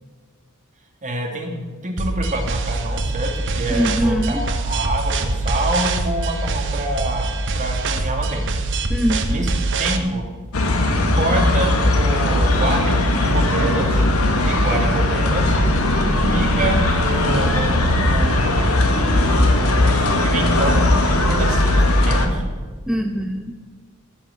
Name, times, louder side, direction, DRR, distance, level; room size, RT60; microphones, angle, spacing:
voice 1, 1.0-1.5 1.8-8.5 9.3-10.2 11.1-14.1 14.4-15.6 15.8-15.9 16.3-18.9 19.5-22.4, right 1 dB, 35° right, 1 dB, 2.2 m, -26 dB
sound 1, 2.0-10.0, right 2 dB, 60° right, 1.0 m, -24 dB
voice 2, 3.7-4.5 8.9-9.5 16.1-16.4 22.9-23.5, equal, 5° right, 4 dB, 0.5 m, -23 dB
sound 2, 10.5-22.3, left 1 dB, 85° left, 1.5 m, -18 dB
14.0 x 6.0 x 8.3 m, 1.4 s
head